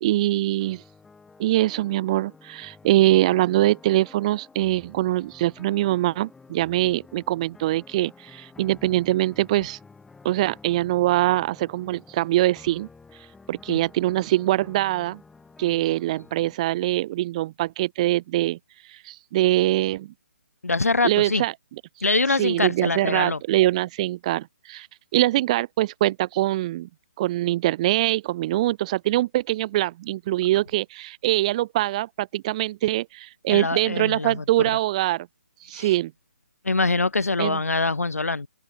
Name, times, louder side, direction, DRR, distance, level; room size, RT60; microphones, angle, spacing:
voice 1, 0.0-0.8 1.4-9.8 10.2-12.9 13.5-15.2 15.6-18.6 18.9-20.1 21.0-21.5 22.4-24.9 25.1-26.9 27.2-35.3 35.6-36.1 37.4-37.6, right 16 dB, 30° right, 0.4 m, -23 dB
sound 1, 0.6-16.5, left 4 dB, 5° left, 2.4 m, -50 dB
voice 2, 20.6-21.4 22.0-23.4 33.5-34.8 35.7-35.9 36.6-38.5, left 3 dB, 85° left, 1.5 m, -24 dB
open air
figure-of-eight pair, 145°, 8 cm